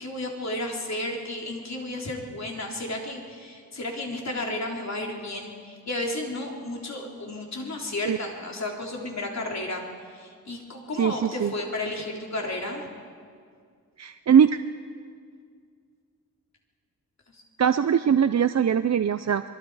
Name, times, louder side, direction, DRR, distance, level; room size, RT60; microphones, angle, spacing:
voice 1, 0.0-9.8 10.1-12.9 17.3-17.4, left 1 dB, 50° left, 0 dB, 3.6 m, -33 dB
voice 2, 11.0-11.5 14.0-14.6 17.6-19.4, right 8 dB, 50° right, 11 dB, 0.5 m, -21 dB
25.5 x 22.5 x 4.8 m, 2.1 s
wide cardioid pair, 95°, 35 cm